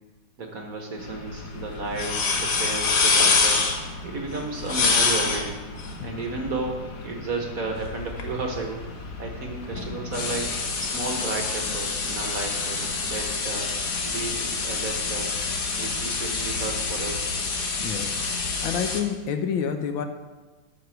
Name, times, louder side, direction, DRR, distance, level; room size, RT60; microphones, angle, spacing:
voice 1, 0.4-3.6 4.0-5.6 6.0-8.8 9.2-10.5 10.8-13.7 14.1-15.3 15.8-17.3, right 3 dB, 50° right, 2 dB, 1.2 m, -33 dB
sound 1, 1.0-19.0, left 4 dB, 50° left, 1.3 m, -27 dB
voice 2, 17.8-18.2 18.6-20.1, left 7 dB, 75° left, 7 dB, 1.4 m, -28 dB
12.5 x 5.0 x 5.8 m, 1.2 s
omnidirectional pair, 2.3 m